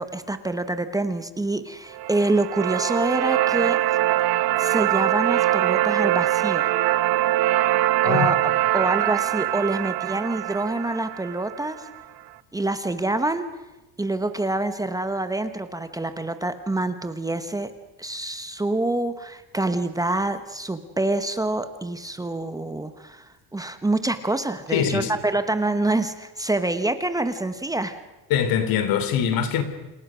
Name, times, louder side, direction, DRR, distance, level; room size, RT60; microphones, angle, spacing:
voice 1, 0.0-3.8 4.6-6.7 8.0-11.9 12.5-13.5 14.0-17.7 18.0-28.0, right 2 dB, 10° right, 1.1 m, -26 dB
sound 1, 1.9-12.0, right 14 dB, 85° right, 1.4 m, -23 dB
voice 2, 24.7-25.1 28.3-29.6, left 8 dB, 65° left, 3.4 m, -22 dB
29.5 x 28.0 x 6.3 m
cardioid pair, 170°, 38 cm